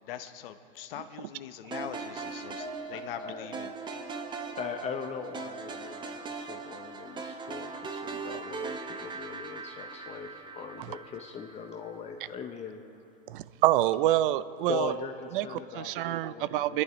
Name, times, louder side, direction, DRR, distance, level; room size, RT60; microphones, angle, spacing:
voice 1, 0.0-4.0, left 10 dB, 65° left, 9 dB, 0.8 m, -42 dB
sound 1, 1.7-12.0, right 4 dB, 15° right, 0.7 m, -40 dB
Piano, 2.6-7.1 7.4-7.6 8.0-8.1, right 3 dB, 5° left, 3.0 m, -48 dB
voice 2, 4.5-12.9 14.7-15.1 15.4-16.8, left 6 dB, 20° left, 5 dB, 0.6 m, -40 dB
voice 3, 13.3-14.9 15.3-16.8, right 14 dB, 60° right, 16 dB, 0.5 m, -27 dB
26.0 x 11.0 x 3.0 m, 2.6 s
hypercardioid pair, 130°, 30 cm